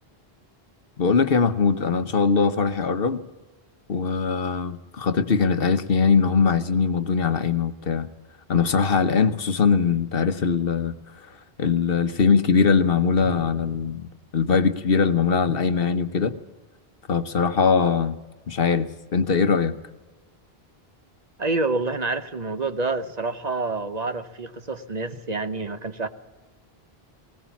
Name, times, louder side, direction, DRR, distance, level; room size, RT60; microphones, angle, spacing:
voice 1, 1.0-3.2 3.9-8.1 8.5-11.3 11.6-16.4 17.1-18.2 18.5-19.7, left 5 dB, 65° left, 11 dB, 1.2 m, -21 dB
sound 1, 13.2-16.0 16.3-16.4, left 1 dB, 65° right, 3.4 m, -45 dB
voice 2, 21.4-26.1, right 3 dB, 45° right, 10 dB, 1.0 m, -27 dB
19.5 x 18.5 x 7.2 m, 1.2 s
omnidirectional pair, 1.0 m